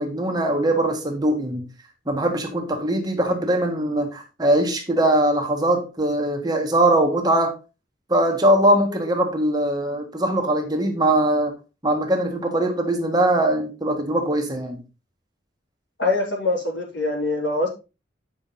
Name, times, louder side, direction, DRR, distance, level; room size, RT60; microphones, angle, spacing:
voice 1, 0.0-1.6 2.1-7.5 8.1-11.5 11.8-14.8, right 1 dB, 20° right, 3 dB, 1.5 m, -21 dB
voice 2, 16.0-17.7, left 2 dB, 70° left, -2 dB, 4.2 m, -23 dB
8.9 x 6.1 x 4.0 m, 0.30 s
head